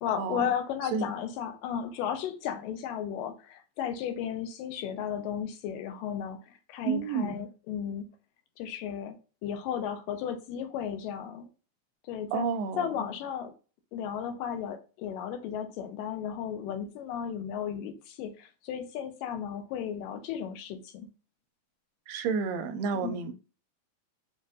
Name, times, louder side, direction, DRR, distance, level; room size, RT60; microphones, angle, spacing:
voice 1, 0.0-8.1 8.6-9.2 9.4-11.5 12.1-12.5 12.8-13.5 13.9-21.1 22.9-23.3, left 8 dB, 85° left, 2.3 m, -34 dB
voice 2, 6.8-7.4 12.3-12.9 22.1-23.4, right 6 dB, 80° right, 2.2 m, -30 dB
6.4 x 2.5 x 2.6 m
omnidirectional pair, 3.9 m